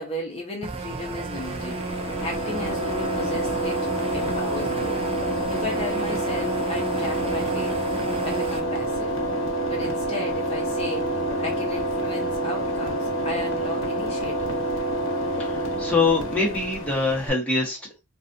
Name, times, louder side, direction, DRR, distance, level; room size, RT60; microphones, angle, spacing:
voice 1, 0.0-5.1 5.5-7.8 8.2-9.1 9.7-11.1 11.4-14.5, left 1 dB, 30° left, 1.0 m, -35 dB
sound 1, 0.6-8.6, right 3 dB, 25° right, 0.4 m, -33 dB
sound 2, 1.3-17.3, right 1 dB, 65° left, 1.0 m, -27 dB
voice 2, 15.4-18.0, left 3 dB, 5° left, 1.4 m, -24 dB
3.1 x 2.6 x 2.7 m
head